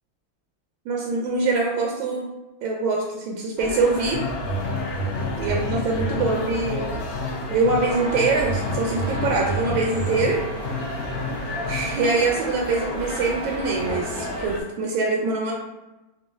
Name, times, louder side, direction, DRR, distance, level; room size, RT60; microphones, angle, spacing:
voice 1, 0.9-2.3 2.6-4.2 5.4-6.9 7.5-10.4 11.7-15.5, right 3 dB, 80° right, -1 dB, 1.3 m, -24 dB
sound 1, 3.6-14.6, left 2 dB, 65° left, 0.9 m, -33 dB
sound 2, 4.1-12.0, left 1 dB, 90° left, 1.4 m, -29 dB
sound 3, 7.8-14.5, right 2 dB, 40° right, 0.8 m, -37 dB
4.2 x 2.3 x 3.4 m, 1.0 s
omnidirectional pair, 2.2 m